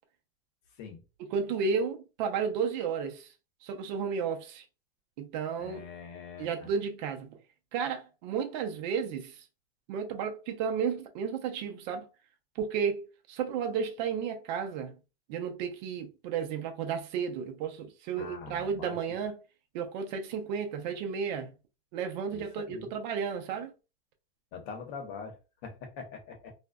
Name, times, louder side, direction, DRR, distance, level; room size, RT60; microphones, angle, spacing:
voice 1, 1.3-3.3 3.6-4.6 5.2-5.8 6.4-7.3 7.7-9.4 9.9-12.1 12.6-15.0 15.3-19.4 19.7-21.5 21.9-23.7, right 6 dB, 50° right, 0.6 m, -33 dB
voice 2, 5.6-6.7 18.2-19.2 22.3-22.9 24.5-26.5, left 5 dB, 50° left, 1.0 m, -44 dB
2.5 x 2.2 x 2.3 m
supercardioid pair, 140°, 30 cm